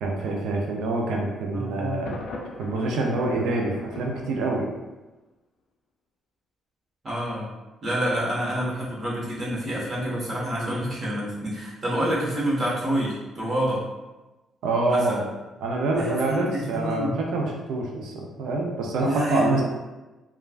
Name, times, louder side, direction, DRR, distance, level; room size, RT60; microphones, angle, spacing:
voice 1, 0.0-2.2 2.6-4.7 14.6-15.2 15.6-19.6, right 2 dB, 85° right, 0 dB, 0.4 m, -26 dB
voice 2, 1.5-2.1 7.0-7.5 7.8-13.8 14.9-15.2 15.9-17.2 19.0-19.6, right 1 dB, 45° right, -7 dB, 1.3 m, -27 dB
Thunder, 2.0-5.0, left 3 dB, 75° left, 0.4 m, -41 dB
3.1 x 2.3 x 2.4 m, 1.1 s
cardioid pair, 90°, 0 cm